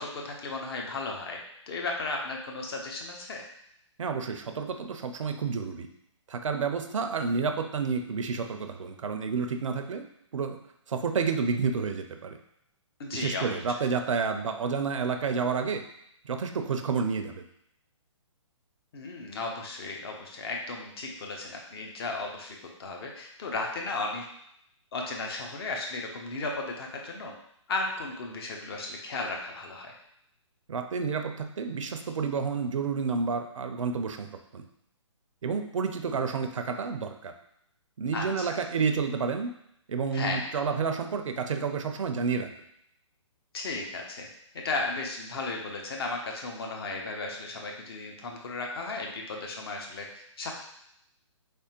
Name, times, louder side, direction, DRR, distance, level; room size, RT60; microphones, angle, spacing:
voice 1, 0.0-1.4 1.7-3.4 13.0-13.5 18.9-24.3 24.9-27.3 27.7-29.9 38.1-38.6 40.1-40.5 43.5-44.3 44.5-50.5, left 3 dB, 50° left, 1 dB, 0.8 m, -35 dB
voice 2, 4.0-5.9 6.3-10.0 10.3-10.6 10.9-12.4 13.1-15.8 16.3-17.4 30.7-34.6 35.4-37.3 38.0-39.5 39.9-42.5, right 5 dB, 80° right, 6 dB, 0.5 m, -30 dB
3.4 x 3.2 x 2.9 m, 0.74 s
hypercardioid pair, 140°, 16 cm